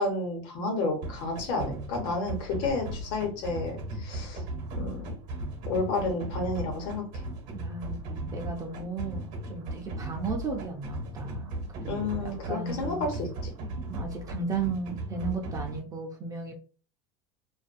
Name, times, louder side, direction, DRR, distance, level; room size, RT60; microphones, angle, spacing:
voice 1, 0.0-4.4 4.8-5.0 5.7-7.1 11.9-13.5 13.8-13.9, left 3 dB, 60° left, 2 dB, 1.1 m, -31 dB
sound 1, 1.0-15.8, right 1 dB, 50° right, 0.9 m, -37 dB
voice 2, 7.5-13.0 13.9-16.5, right 4 dB, 20° right, 1 dB, 0.6 m, -35 dB
2.5 x 2.2 x 2.5 m, 0.36 s
supercardioid pair, 145°, 17 cm